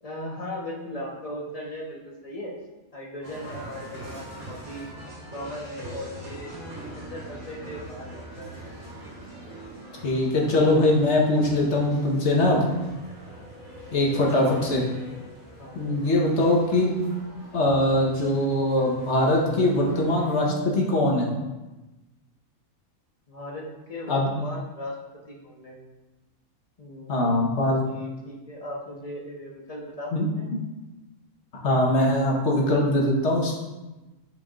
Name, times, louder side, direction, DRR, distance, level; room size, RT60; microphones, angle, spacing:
voice 1, 0.0-2.5 2.9-4.8 5.1-6.5 6.9-8.6 13.8-14.2 15.6-15.8 23.3-24.9 25.3-25.8 26.8-27.4 27.8-30.6, left 1 dB, 30° left, -2 dB, 1.1 m, -38 dB
sound 1, 3.2-20.4, right 1 dB, 60° right, 1.8 m, -42 dB
voice 2, 10.0-12.6 13.9-14.8 15.7-16.9 17.5-21.3 24.1-24.3 27.1-27.8 30.1-30.2 31.5-33.5, left 1 dB, 55° left, -2 dB, 1.4 m, -22 dB
9.3 x 4.7 x 2.4 m, 1.1 s
omnidirectional pair, 1.5 m